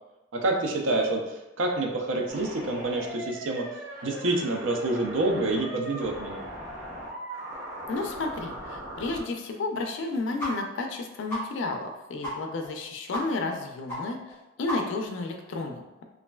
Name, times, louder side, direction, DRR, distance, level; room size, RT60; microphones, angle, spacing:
voice 1, 0.3-6.5, right 2 dB, 75° right, 2 dB, 0.4 m, -28 dB
sound 1, 2.3-9.2, equal, 15° right, 0.6 m, -39 dB
voice 2, 7.9-16.0, left 3 dB, 70° left, 4 dB, 0.3 m, -32 dB
sound 2, 10.4-10.5 10.8-10.9 11.3-11.4 11.8-11.9 12.2-12.3 12.6-12.7 13.1-13.2 13.5-13.6 13.9-14.0 14.3-14.4 14.7-15.1, equal, 15° left, 1.3 m, -33 dB
3.0 x 2.4 x 2.2 m, 1.0 s
head